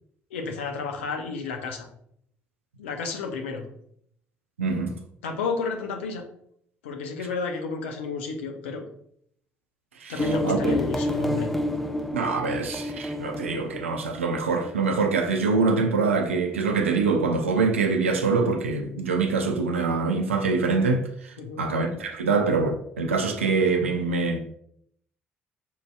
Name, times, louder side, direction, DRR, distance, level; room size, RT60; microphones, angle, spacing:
voice 1, 0.3-1.9 2.8-3.6 5.2-6.2 6.8-8.8 10.1-11.5 21.4-21.7, left 4 dB, 80° left, 0.5 m, -31 dB
voice 2, 4.6-5.0 10.0-10.8 12.1-24.4, right 4 dB, 85° right, 0.4 m, -24 dB
sound 1, 10.2-15.6, left 1 dB, ahead, 0.5 m, -30 dB
5.3 x 2.6 x 2.2 m
figure-of-eight pair, 45°, 7 cm